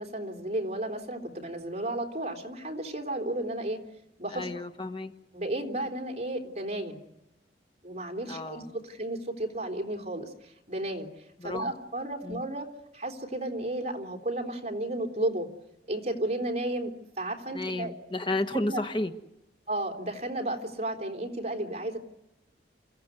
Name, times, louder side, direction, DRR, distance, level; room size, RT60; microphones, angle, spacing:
voice 1, 0.0-3.8 4.2-4.6 5.3-7.0 7.8-11.1 11.4-12.7 12.9-15.5 15.9-16.9 17.2-17.9 18.5-18.8 19.7-22.0, right 1 dB, 40° right, 3 dB, 3.6 m, -33 dB
voice 2, 4.3-5.1 8.3-8.7 11.4-11.7 12.2-12.4 17.5-19.1, left 2 dB, 25° left, 7 dB, 1.5 m, -32 dB
28.5 x 15.5 x 9.5 m, 0.89 s
head